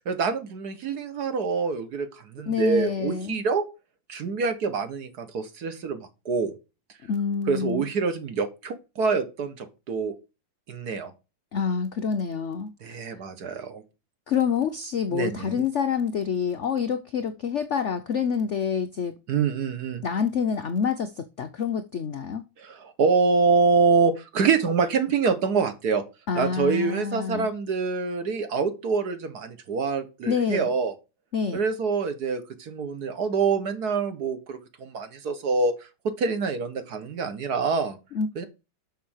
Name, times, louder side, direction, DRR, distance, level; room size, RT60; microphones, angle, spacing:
voice 1, 0.1-3.6 4.1-6.6 7.5-10.1 10.7-11.1 12.8-13.8 15.1-15.6 19.3-20.0 22.6-26.0 26.4-30.9 31.5-35.7 36.0-38.0 38.4-38.5, right 5 dB, 55° right, 1.8 m, -26 dB
voice 2, 2.5-3.4 7.0-7.9 11.5-13.0 14.3-19.2 20.0-22.4 26.3-27.5 30.3-30.7 31.3-31.6 38.1-38.3, left 6 dB, 85° left, 0.6 m, -27 dB
6.8 x 6.4 x 6.5 m
omnidirectional pair, 2.2 m